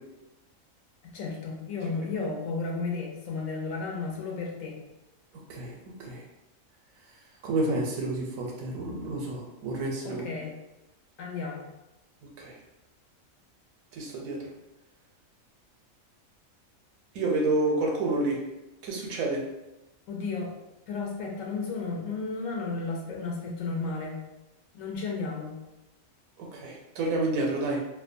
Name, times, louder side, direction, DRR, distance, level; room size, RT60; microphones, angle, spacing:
voice 1, 1.0-4.8 10.0-10.5 11.2-11.7 20.1-20.5 20.9-24.2 24.7-25.6, left 4 dB, 75° left, -1 dB, 1.0 m, -33 dB
voice 2, 5.5-6.2 7.4-10.3 12.4-12.6 13.9-14.5 17.1-18.5 18.8-19.5 26.4-27.9, right 2 dB, 85° right, 0 dB, 1.0 m, -29 dB
2.6 x 2.1 x 2.5 m, 0.96 s
omnidirectional pair, 1.4 m